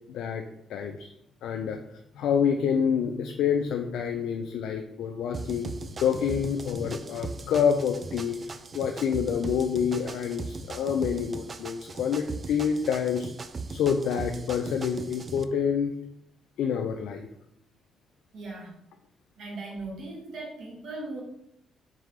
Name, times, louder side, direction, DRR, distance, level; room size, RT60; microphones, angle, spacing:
voice 1, 0.1-0.4 0.7-1.1 1.4-5.7 6.0-13.3 13.7-15.9 16.6-17.3, left 7 dB, 80° left, 5 dB, 0.3 m, -27 dB
sound 1, 5.3-15.4, right 3 dB, 35° right, 0.3 m, -39 dB
voice 2, 18.3-18.8 19.4-21.2, right 2 dB, 65° right, -2 dB, 1.4 m, -38 dB
3.6 x 3.6 x 3.1 m, 0.77 s
cardioid pair, 90°, 0 cm